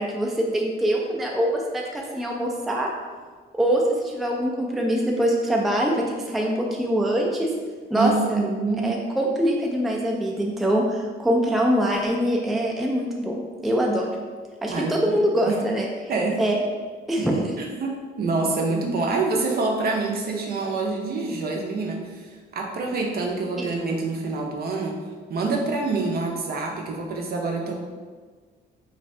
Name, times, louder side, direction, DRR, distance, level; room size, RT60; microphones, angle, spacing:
voice 1, 0.0-2.9 3.5-7.5 7.9-8.4 8.8-13.4 13.6-14.1 14.6-15.9 16.4-16.5 17.1-17.5, equal, ahead, -1 dB, 0.3 m, -23 dB
voice 2, 8.0-8.9 14.7-15.1 15.5-15.6 16.1-16.6 17.2-17.3 17.6-25.0 25.3-27.7, right 3 dB, 50° right, 0 dB, 0.6 m, -26 dB
2.6 x 2.4 x 3.2 m, 1.5 s
cardioid pair, 90°, 20 cm